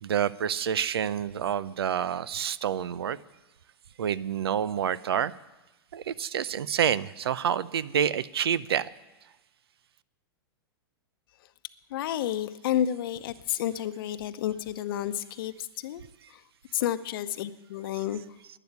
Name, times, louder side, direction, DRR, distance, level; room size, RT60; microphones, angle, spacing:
voice 1, 0.0-3.2 4.0-5.3 5.9-8.9, right 9 dB, 85° right, 19 dB, 0.6 m, -28 dB
voice 2, 11.9-16.0 16.7-18.2, left 11 dB, 65° left, 13 dB, 0.8 m, -30 dB
11.5 x 10.0 x 9.5 m, 1.1 s
hypercardioid pair, 120°, 13 cm